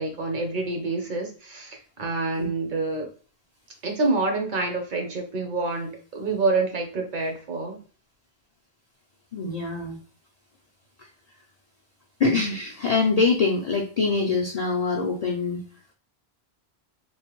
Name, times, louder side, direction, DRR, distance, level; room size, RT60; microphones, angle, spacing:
voice 1, 0.0-3.1 3.8-7.8, right 3 dB, 55° right, 2 dB, 0.8 m, -27 dB
voice 2, 9.3-10.0 11.0-11.1 12.2-15.6, left 4 dB, 55° left, -1 dB, 0.5 m, -24 dB
3.0 x 2.1 x 3.0 m, 0.39 s
omnidirectional pair, 1.1 m